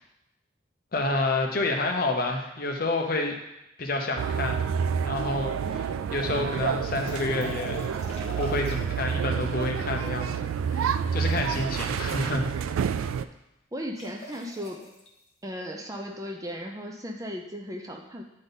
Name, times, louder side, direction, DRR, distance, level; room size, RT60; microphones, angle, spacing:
voice 1, 0.9-3.4 3.8-4.6 5.0-7.8 8.4-10.3 10.7-12.5, left 2 dB, 45° left, 3 dB, 0.8 m, -29 dB
sound 1, 4.2-13.2, right 7 dB, 90° right, 0.3 m, -29 dB
sound 2, 6.9-9.0 10.8-12.4 14.0-15.1, left 2 dB, 30° left, 1.2 m, -42 dB
voice 2, 13.7-14.8 15.4-18.2, equal, 15° right, 2 dB, 0.5 m, -36 dB
9.1 x 3.7 x 4.0 m, 0.90 s
head